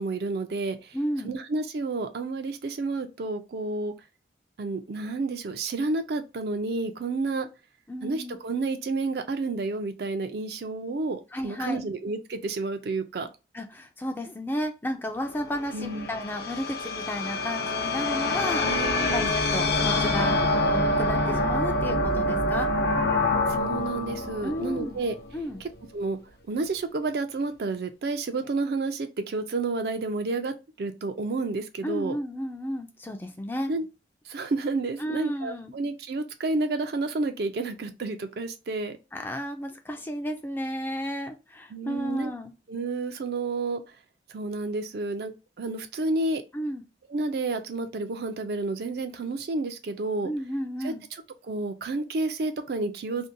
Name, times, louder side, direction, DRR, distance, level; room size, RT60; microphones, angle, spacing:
voice 1, 0.0-1.0 1.2-3.9 4.6-7.5 8.0-13.3 15.7-16.1 18.6-19.3 23.5-25.2 25.6-26.2 26.5-32.2 33.7-33.9 34.3-39.0 41.7-42.3 42.7-43.8 44.3-46.4 47.1-50.3 50.8-50.9 51.4-53.3, right 3 dB, 60° right, 0.4 m, -30 dB
voice 2, 0.9-1.4 7.9-8.4 11.3-11.8 13.5-18.9 19.1-22.7 24.4-25.0 25.3-25.6 31.8-33.7 35.0-35.7 39.1-42.5 46.5-46.8 50.2-51.0, equal, 10° left, 0.3 m, -33 dB
sound 1, 15.3-25.6, left 2 dB, 60° left, 0.6 m, -26 dB
2.6 x 2.1 x 2.5 m
head